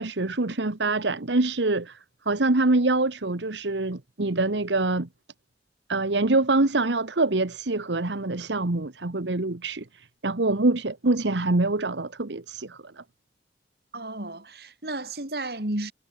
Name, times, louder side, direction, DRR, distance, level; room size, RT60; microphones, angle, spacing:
voice 1, 0.0-2.0 2.2-5.1 5.9-13.0, right 2 dB, 80° right, 1.3 m, -25 dB
voice 2, 13.9-15.9, right 2 dB, 60° right, 3.4 m, -33 dB
head